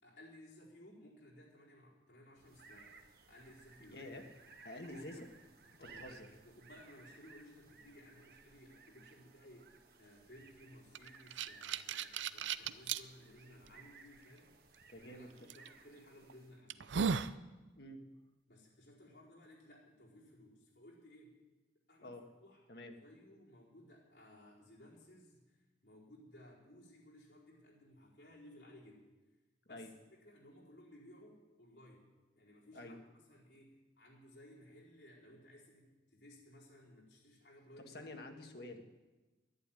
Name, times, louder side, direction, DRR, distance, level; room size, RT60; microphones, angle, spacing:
voice 1, 0.0-3.0 3.3-4.0 4.8-5.3 5.8-6.1 6.4-17.0 18.5-21.3 21.9-22.6 22.9-29.1 29.6-29.9 30.2-32.1 32.3-38.5, left 1 dB, 80° left, -5 dB, 4.5 m, -59 dB
sound 1, 2.4-16.7, right 4 dB, 55° right, 1.5 m, -60 dB
voice 2, 3.8-4.2 4.6-5.3 5.8-6.3 14.9-15.3 17.7-18.0 22.0-22.2 22.7-22.9 29.7-29.9 32.7-33.0 37.9-38.8, left 1 dB, 60° left, 4 dB, 1.7 m, -49 dB
sound 2, 10.9-13.0 13.7-13.8 15.5-15.7 16.2-16.3 16.7-17.4, right 6 dB, 90° right, 0.5 m, -36 dB
11.5 x 11.0 x 9.2 m, 1.2 s
head